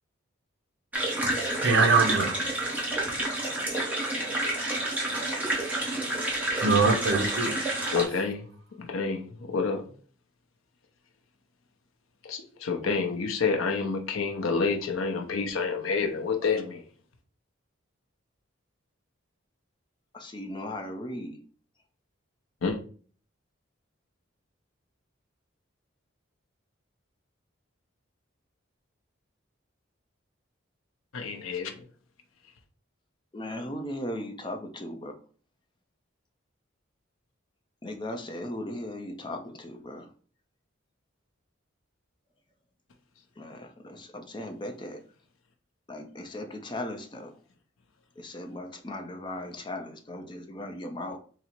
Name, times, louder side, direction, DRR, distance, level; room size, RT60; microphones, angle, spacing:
sound 1, 0.9-8.0, right 1 dB, 10° right, 0.9 m, -29 dB
voice 1, 1.6-2.5 3.1-3.2 6.6-7.6, right 4 dB, 60° right, 0.7 m, -23 dB
voice 2, 7.9-8.5 8.8-9.9 12.3-16.8 22.6-22.8 31.1-31.8, left 4 dB, 80° left, 0.6 m, -28 dB
voice 3, 20.1-21.4 33.3-35.1 37.8-40.1 43.4-45.0 45.9-47.4 48.2-51.2, left 1 dB, 20° left, 0.5 m, -37 dB
3.8 x 2.0 x 4.4 m
head